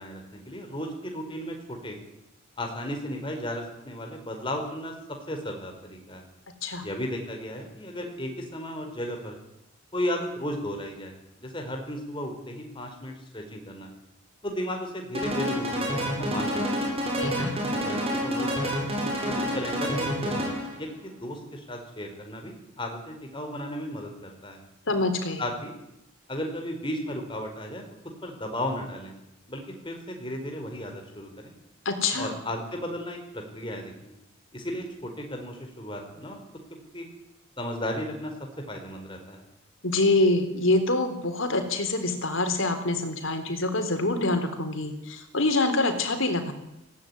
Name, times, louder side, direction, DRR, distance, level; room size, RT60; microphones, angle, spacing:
voice 1, 0.0-2.0 2.6-4.9 5.3-6.3 6.8-9.3 9.9-13.9 14.4-16.9 17.7-18.9 19.2-24.6 25.4-25.7 26.3-27.8 28.2-29.1 29.5-31.5 32.2-34.1 34.5-36.4 36.9-37.0 37.6-39.4, equal, 25° left, 3 dB, 4.7 m, -35 dB
sound 1, 15.1-20.8, equal, 30° right, 7.7 m, -28 dB
voice 2, 17.2-17.7 24.9-25.4 31.9-32.3 39.8-46.5, left 2 dB, 85° left, 7 dB, 3.8 m, -25 dB
18.5 x 17.0 x 9.8 m, 0.88 s
head